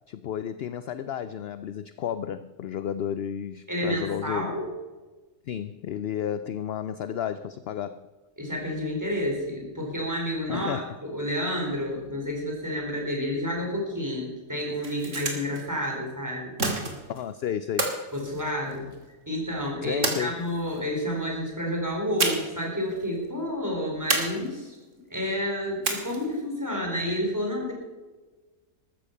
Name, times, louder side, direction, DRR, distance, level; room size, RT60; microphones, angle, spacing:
voice 1, 0.1-4.5 5.5-8.1 10.5-10.9 17.1-18.0 19.8-20.4, left 9 dB, 65° left, 13 dB, 0.6 m, -32 dB
voice 2, 3.7-4.7 8.4-16.5 18.1-18.9 19.3-24.8 25.1-27.7, equal, 10° right, -1 dB, 4.4 m, -30 dB
sound 1, 14.6-15.6 16.6-17.2 17.8-19.0 20.0-20.8 22.2-22.7 22.9-23.0 24.1-24.8 25.8-26.4, right 3 dB, 55° right, 2.5 m, -29 dB
13.5 x 13.5 x 5.6 m, 1.2 s
omnidirectional pair, 1.5 m